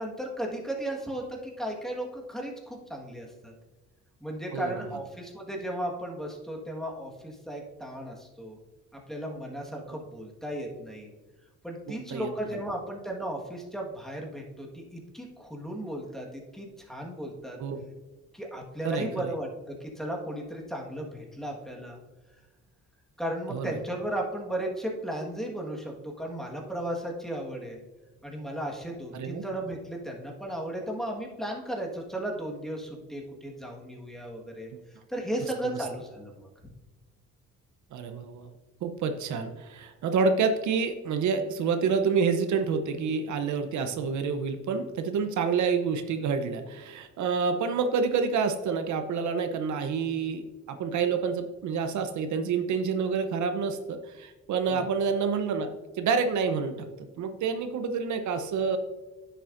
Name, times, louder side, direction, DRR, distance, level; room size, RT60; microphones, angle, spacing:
voice 1, 0.0-3.5 4.2-8.6 9.1-11.1 11.6-17.6 18.3-22.0 23.2-27.8 28.2-34.7 35.1-36.5 54.7-54.8, right 1 dB, ahead, -1 dB, 1.4 m, -35 dB
voice 2, 18.8-19.3 23.5-23.7 29.1-29.4 35.6-35.8 37.9-38.5 38.8-55.7 56.0-56.9 57.2-58.8, right 5 dB, 70° right, 7 dB, 0.7 m, -28 dB
10.0 x 6.8 x 2.5 m, 1.2 s
cardioid pair, 90°, 30 cm